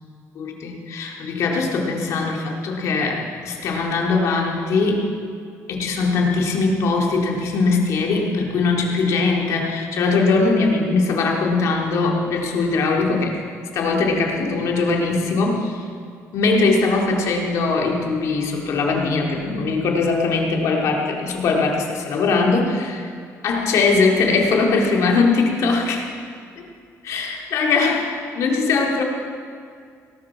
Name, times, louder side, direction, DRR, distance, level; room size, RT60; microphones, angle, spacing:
voice 1, 0.4-5.1 5.7-13.4 13.7-15.8 16.3-23.1 23.4-26.1 26.6-26.7 27.0-29.0, left 3 dB, 65° left, 0 dB, 2.2 m, -21 dB
18.5 x 12.0 x 4.7 m, 2.3 s
cardioid pair, 170°, 6 cm